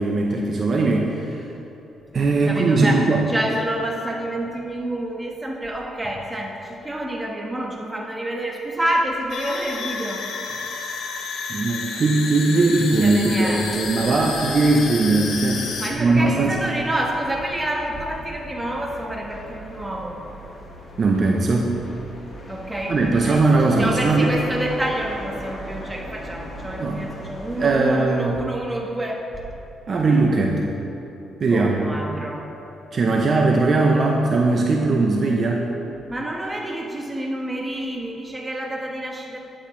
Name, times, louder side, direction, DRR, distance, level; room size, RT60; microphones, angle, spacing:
voice 1, 0.0-1.4 2.1-3.2 11.5-15.7 16.0-16.6 21.0-21.8 22.9-24.4 26.8-27.0 27.6-28.4 29.9-30.7 31.4-31.8 32.9-35.7, right 3 dB, 45° right, 0 dB, 0.7 m, -19 dB
voice 2, 2.4-10.2 12.5-13.9 15.8-20.2 22.5-23.4 23.8-29.4 31.5-32.5 36.1-39.4, right 1 dB, 15° right, -1 dB, 1.3 m, -28 dB
sound 1, 9.3-15.9, left 4 dB, 75° left, 0.9 m, -31 dB
sound 2, 12.9-27.8, equal, 40° left, 1.5 m, -39 dB
10.0 x 8.7 x 3.1 m, 3.0 s
cardioid pair, 90°, 0 cm